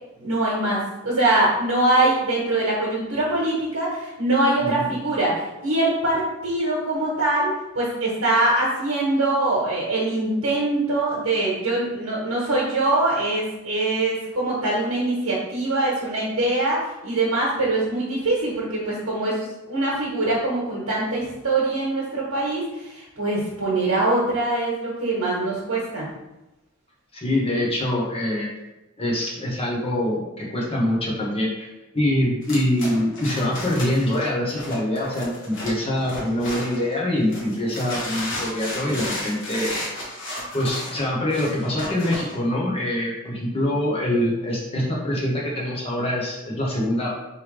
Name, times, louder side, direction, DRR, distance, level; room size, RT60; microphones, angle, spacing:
voice 1, 0.2-26.1 43.5-43.6, right 2 dB, 80° right, -6 dB, 1.3 m, -23 dB
voice 2, 27.1-28.5 29.0-31.7 31.9-39.7 40.5-47.1, left 1 dB, 30° left, -4 dB, 1.1 m, -24 dB
sound 1, 32.4-36.9 37.3-42.4, left 1 dB, 60° left, 1.3 m, -33 dB
4.5 x 3.4 x 3.3 m, 0.98 s
head